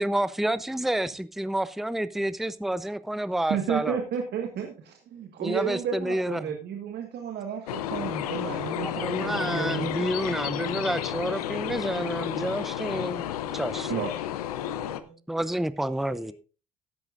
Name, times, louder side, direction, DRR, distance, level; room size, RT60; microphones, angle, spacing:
voice 1, 0.0-4.0 5.4-6.5 8.8-13.2 13.5-13.9 15.3-16.3, right 1 dB, ahead, 15 dB, 0.7 m, -29 dB
voice 2, 3.5-10.1 13.9-14.2, right 7 dB, 65° right, 4 dB, 1.7 m, -32 dB
sound 1, 7.7-15.0, left 11 dB, 90° left, 0.7 m, -32 dB
voice 3, 10.2-12.0 14.6-16.3, right 2 dB, 90° right, -2 dB, 5.9 m, -52 dB
15.0 x 11.0 x 2.5 m, 0.34 s
hypercardioid pair, 50°, 19 cm